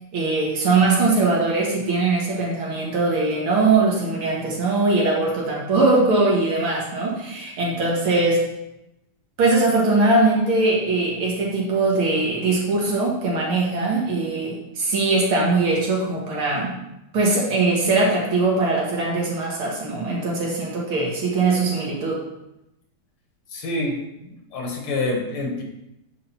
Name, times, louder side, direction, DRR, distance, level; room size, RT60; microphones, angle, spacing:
voice 1, 0.1-8.5 9.4-16.7 17.1-22.2, right 3 dB, 70° right, -3 dB, 2.4 m, -21 dB
voice 2, 23.5-25.6, left 2 dB, 75° left, 1 dB, 2.1 m, -27 dB
8.6 x 5.0 x 2.8 m, 0.89 s
omnidirectional pair, 2.4 m